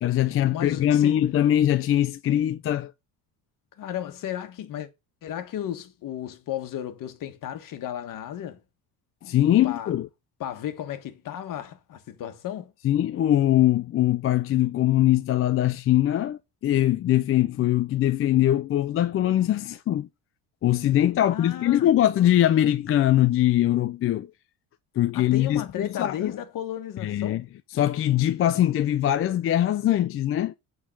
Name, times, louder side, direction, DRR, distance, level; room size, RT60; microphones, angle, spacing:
voice 1, 0.0-2.9 9.2-10.1 12.8-20.1 20.6-24.3 25.0-26.4 27.0-27.4 27.7-30.5, left 12 dB, 35° left, 0.4 m, -22 dB
voice 2, 0.5-1.2 3.8-4.9 5.2-8.6 9.6-9.9 10.4-12.7 21.2-21.9 25.1-27.4, left 11 dB, 60° left, 1.5 m, -34 dB
8.8 x 3.9 x 6.8 m
cardioid pair, 155°, 37 cm